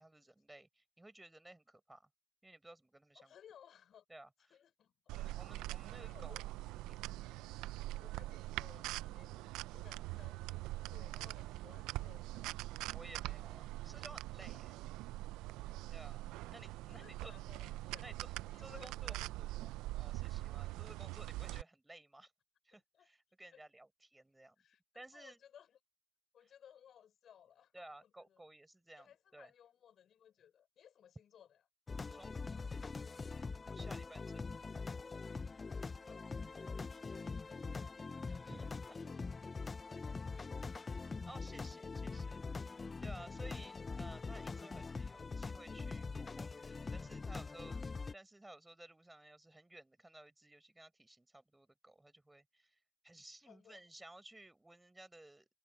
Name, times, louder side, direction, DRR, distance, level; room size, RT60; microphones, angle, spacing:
voice 1, 0.0-2.1 2.4-3.3 4.1-4.6 5.1-6.4 6.8-7.0 12.9-14.7 15.9-16.2 16.5-17.3 18.0-18.3 18.6-19.2 19.9-22.3 22.6-24.6 24.9-25.4 27.7-29.5 32.1-32.7 33.7-34.7 38.4-39.0 41.2-47.8 48.1-52.8 53.0-55.5, right 2 dB, 10° right, 6.0 m, -56 dB
voice 2, 3.1-4.0 4.5-5.2 5.7-6.5 8.0-12.9 14.5-14.6 16.6-18.1 18.5-19.8 20.2-20.6 22.7-23.1 23.5-23.6 24.6-25.8 26.3-28.4 29.0-31.6 34.0-34.1 35.7-38.0 38.9-39.6 39.9-41.2 41.6-41.7 43.4-43.5 47.6-47.8 53.5-53.8, left 9 dB, 55° left, 6.4 m, -62 dB
sound 1, 5.1-21.6, right 17 dB, 75° right, 0.7 m, -43 dB
sound 2, 31.9-48.1, left 4 dB, 30° left, 0.7 m, -43 dB
hypercardioid pair, 65°, 0 cm